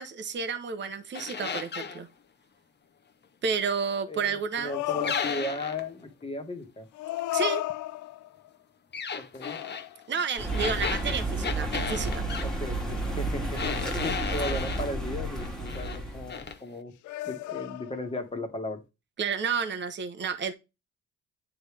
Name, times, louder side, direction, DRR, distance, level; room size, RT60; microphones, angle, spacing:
voice 1, 0.0-2.1 3.4-4.7 7.3-7.6 10.1-12.3 19.2-20.5, right 6 dB, 40° right, 0.9 m, -31 dB
sound 1, 1.1-2.0 5.0-5.9 8.9-9.9 10.5-12.5 13.6-14.9 15.4-16.0 16.3-16.6, left 6 dB, 35° left, 0.9 m, -34 dB
voice 2, 4.1-6.9 9.1-9.6 12.4-13.6 14.0-16.9 17.2-18.8, left 1 dB, 20° left, 1.6 m, -36 dB
sound 2, 4.6-5.7 6.9-8.5 9.4-10.4 11.0-11.2 17.0-18.2, left 15 dB, 75° left, 0.5 m, -34 dB
sound 3, 10.4-16.5, right 2 dB, ahead, 1.8 m, -32 dB
9.3 x 3.4 x 3.4 m
cardioid pair, 90°, 30 cm